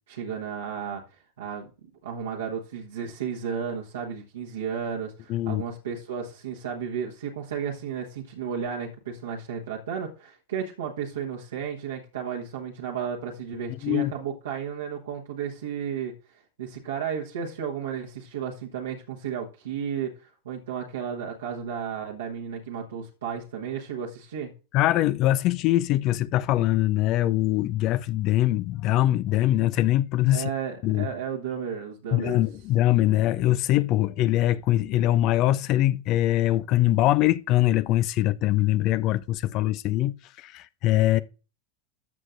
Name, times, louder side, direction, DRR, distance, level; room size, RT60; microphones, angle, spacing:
voice 1, 0.1-1.7 2.0-24.5 30.3-32.4, right 7 dB, 70° right, 1.2 m, -33 dB
voice 2, 5.3-5.6 13.8-14.1 24.7-30.5 30.8-31.1 32.1-41.2, left 14 dB, 45° left, 0.4 m, -23 dB
13.5 x 7.5 x 2.5 m
figure-of-eight pair, 85°, 0 cm